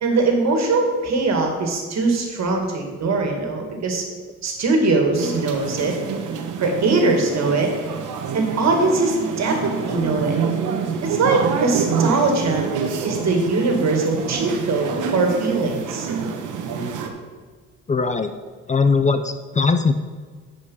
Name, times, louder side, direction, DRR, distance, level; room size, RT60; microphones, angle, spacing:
voice 1, 0.0-4.0 4.4-6.0 6.6-7.7 8.3-10.4 11.0-12.6 13.0-16.1, right 3 dB, 60° right, 3 dB, 2.1 m, -21 dB
sound 1, 5.2-17.1, right 6 dB, 80° right, 1.1 m, -27 dB
voice 2, 17.9-18.3 18.7-19.9, left 4 dB, 25° left, 9 dB, 0.5 m, -19 dB
10.0 x 5.2 x 5.6 m, 1.5 s
cardioid pair, 90°, 30 cm